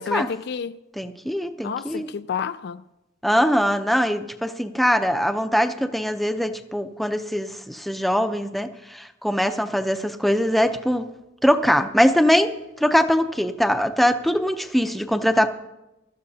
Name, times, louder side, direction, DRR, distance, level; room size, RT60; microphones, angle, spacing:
voice 1, 0.0-0.8 1.6-2.8, left 7 dB, 60° left, 0.4 m, -30 dB
voice 2, 1.0-2.1 3.2-11.1 11.4-12.6 12.8-15.5, equal, ahead, 0.6 m, -22 dB
22.5 x 13.0 x 2.8 m
head